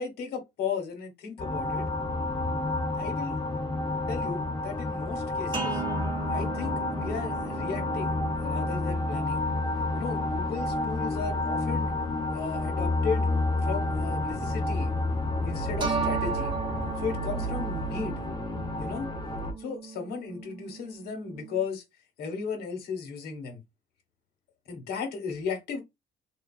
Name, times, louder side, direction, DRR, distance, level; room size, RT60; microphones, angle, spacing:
voice 1, 0.0-1.9 3.0-3.4 4.1-5.8 6.3-9.4 9.9-11.9 12.3-13.3 13.6-14.9 15.4-16.5 17.0-18.2 18.8-19.1 19.6-21.8 22.2-23.6 24.7-25.8, left 5 dB, 70° left, 1.2 m, -35 dB
sound 1, 1.4-19.5, left 2 dB, 30° left, 0.8 m, -30 dB
sound 2, 5.5-14.2 15.8-21.6, right 5 dB, 30° right, 0.7 m, -38 dB
3.2 x 2.4 x 2.4 m
cardioid pair, 110°, 17 cm